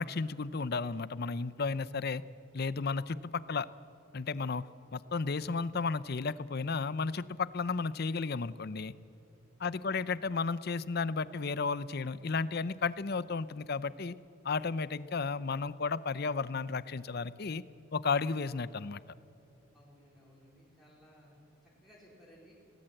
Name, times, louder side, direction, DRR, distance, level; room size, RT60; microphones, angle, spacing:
voice 1, 0.0-2.2 2.5-3.7 4.1-4.6 4.9-8.9 9.6-14.2 14.4-17.6 17.9-19.0, left 4 dB, 50° left, 17 dB, 0.6 m, -33 dB
voice 2, 9.6-10.0 19.7-22.5, equal, ahead, -5 dB, 4.2 m, -59 dB
24.5 x 18.0 x 7.8 m, 2.8 s
head